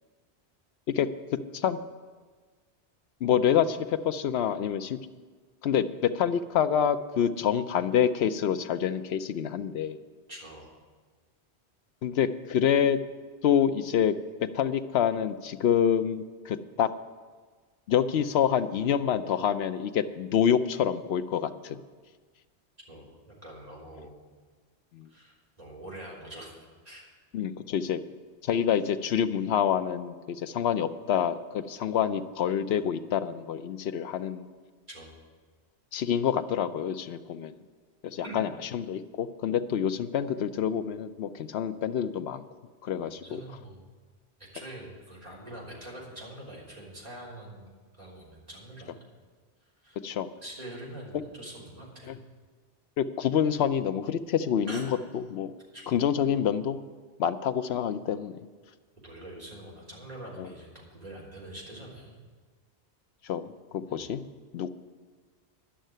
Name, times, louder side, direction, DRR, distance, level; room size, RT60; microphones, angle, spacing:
voice 1, 3.2-5.0 5.6-10.0 12.0-13.0 13.4-14.2 14.4-16.9 17.9-21.8 24.9-25.1 27.3-28.0 28.4-34.5 35.9-37.5 38.0-42.4 42.8-43.4 50.0-50.3 51.1-51.2 52.1-52.2 53.0-54.9 55.1-55.5 55.9-56.8 57.2-58.4 60.4-60.5 63.2-64.2 64.5-64.7, left 8 dB, 75° left, 10 dB, 0.9 m, -27 dB
voice 2, 10.3-10.7 22.9-24.1 25.1-26.5 26.8-27.1 34.9-35.2 38.2-38.4 43.0-43.8 44.5-49.0 49.8-50.0 50.3-52.2 54.7-54.9 55.7-56.0 59.0-62.2 63.9-64.1, right 1 dB, 35° right, -5 dB, 3.6 m, -44 dB
11.5 x 6.5 x 9.1 m, 1.4 s
omnidirectional pair, 1.1 m